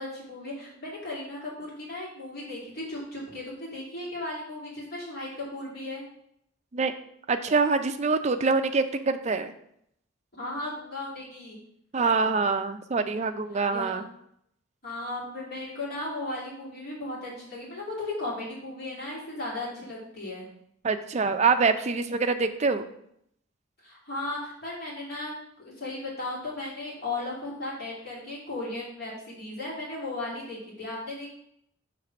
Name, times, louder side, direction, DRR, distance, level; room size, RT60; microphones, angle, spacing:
voice 1, 0.0-6.0 10.4-11.6 13.7-14.0 14.8-20.5 23.8-31.3, left 2 dB, 50° left, -6 dB, 2.7 m, -36 dB
voice 2, 7.3-9.5 11.9-14.0 20.8-22.9, right 4 dB, 35° right, 7 dB, 0.5 m, -25 dB
6.6 x 3.3 x 5.9 m, 0.72 s
head